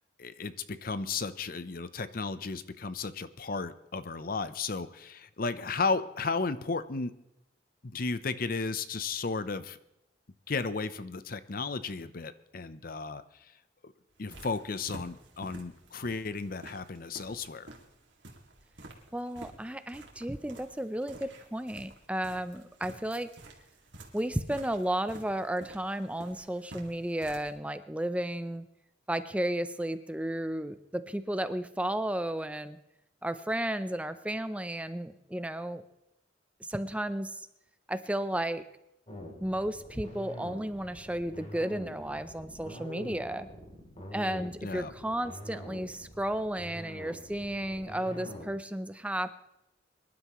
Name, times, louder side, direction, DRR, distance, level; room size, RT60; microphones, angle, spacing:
voice 1, 0.2-7.2 7.8-9.8 10.5-13.2 13.8-13.9 14.2-17.7 44.6-44.9, left 4 dB, 50° left, 13 dB, 0.7 m, -34 dB
sound 1, 14.1-27.5, right 2 dB, 80° right, 2.4 m, -51 dB
voice 2, 19.1-23.3 24.1-28.7 29.1-32.8 33.2-35.8 36.6-37.5 37.9-38.6 39.4-43.5 44.1-49.4, right 1 dB, 5° right, 11 dB, 0.6 m, -33 dB
sound 2, 39.1-48.5, left 1 dB, 35° left, 3.3 m, -44 dB
24.5 x 11.5 x 3.1 m, 0.86 s
head